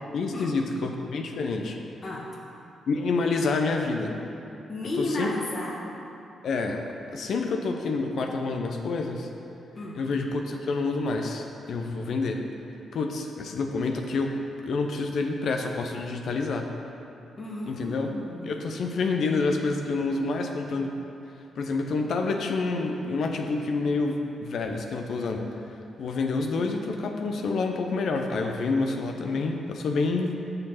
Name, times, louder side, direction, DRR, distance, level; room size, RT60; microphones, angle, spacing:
voice 1, 0.1-1.8 2.9-4.1 5.0-5.3 6.4-6.9 7.1-9.3 9.9-12.4 12.9-16.7 17.7-18.1 18.5-20.9 21.6-25.5 26.0-30.3, left 3 dB, 65° left, 3 dB, 0.6 m, -28 dB
voice 2, 4.7-5.8 9.8-10.0 17.4-18.6, left 2 dB, 50° left, -5 dB, 1.8 m, -33 dB
6.8 x 6.4 x 5.7 m, 2.9 s
hypercardioid pair, 40°, 0 cm